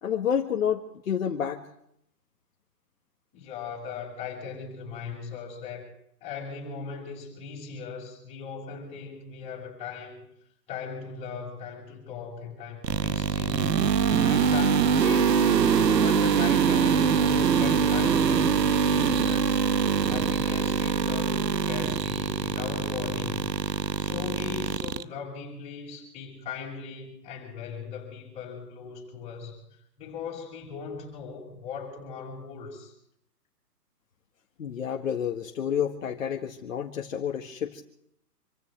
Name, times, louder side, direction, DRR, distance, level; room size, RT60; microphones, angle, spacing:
voice 1, 0.0-1.6 34.6-37.8, left 8 dB, 55° left, 2 dB, 1.7 m, -29 dB
voice 2, 3.3-5.9 6.2-10.3 10.7-13.7 14.2-29.6 30.0-32.9, left 6 dB, 15° left, -3 dB, 6.3 m, -39 dB
sound 1, 12.8-25.0, right 6 dB, 85° right, 1.1 m, -24 dB
27.5 x 15.5 x 3.4 m, 0.73 s
hypercardioid pair, 160°, 48 cm